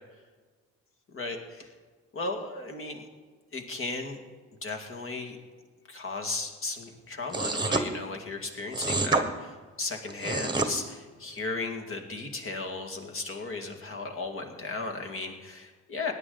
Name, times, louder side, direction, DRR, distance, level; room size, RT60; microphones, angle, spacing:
voice 1, 1.1-1.7 2.1-3.1 3.5-4.2 4.6-5.4 5.9-16.1, left 3 dB, 45° left, 3 dB, 2.1 m, -35 dB
sound 1, 7.3-7.9 8.7-9.2 10.1-10.7, right 3 dB, 15° right, 1.2 m, -27 dB
17.0 x 9.9 x 3.9 m, 1.4 s
cardioid pair, 90°, 30 cm